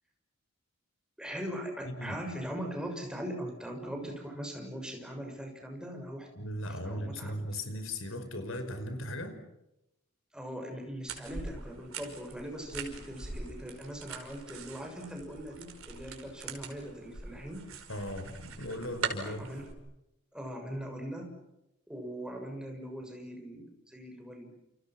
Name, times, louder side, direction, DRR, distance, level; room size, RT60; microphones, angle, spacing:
voice 1, 1.2-6.3 6.6-7.5 10.3-17.7 19.2-19.7 20.3-21.3 21.9-24.5, equal, 5° right, 2 dB, 6.3 m, -40 dB
voice 2, 1.9-2.2 6.4-9.4 17.9-19.5, left 1 dB, 70° left, 7 dB, 5.3 m, -38 dB
sound 1, 11.1-19.7, right 4 dB, 85° right, 5.2 m, -42 dB
30.0 x 29.0 x 6.1 m, 0.89 s
head